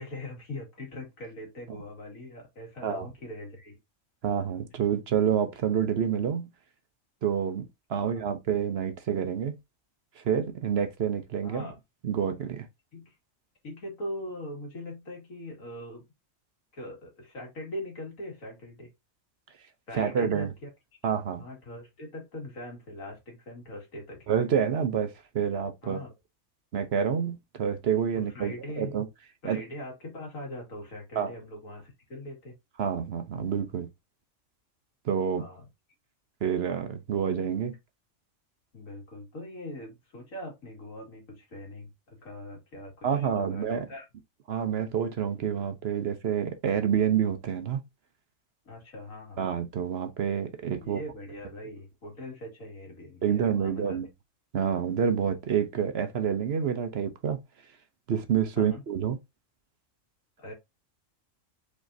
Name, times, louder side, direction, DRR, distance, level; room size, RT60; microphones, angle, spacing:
voice 1, 0.0-3.8 8.0-8.2 11.4-11.8 12.9-13.2 13.6-16.0 16.7-18.9 19.9-20.7 21.4-24.3 25.8-26.1 28.1-28.9 29.4-32.5 35.4-35.7 38.7-44.1 48.7-49.4 50.8-54.0 58.6-58.8 60.4-60.5, left 1 dB, 85° left, 2.5 m, -41 dB
voice 2, 4.2-6.5 7.2-9.5 10.2-11.7 12.0-12.7 19.9-20.5 21.0-21.5 24.3-26.0 26.7-29.1 29.4-29.6 31.2-31.3 32.8-33.9 35.0-35.5 36.4-37.7 43.0-43.9 44.5-47.8 49.4-51.0 53.2-54.1 54.5-57.4 58.1-59.2, right 8 dB, 60° right, 0.9 m, -28 dB
5.1 x 3.7 x 2.6 m
omnidirectional pair, 1.4 m